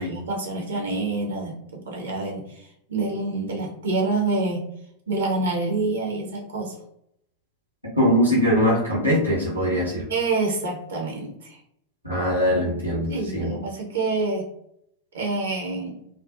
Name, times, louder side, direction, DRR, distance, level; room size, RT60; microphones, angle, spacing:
voice 1, 0.0-4.6 5.1-6.7 10.1-11.6 13.1-14.5 15.1-16.0, right 3 dB, 65° right, 0 dB, 0.5 m, -27 dB
voice 2, 8.0-10.0 12.0-13.5, equal, 85° right, -6 dB, 0.9 m, -21 dB
2.4 x 2.1 x 2.4 m, 0.73 s
figure-of-eight pair, 90°, 0 cm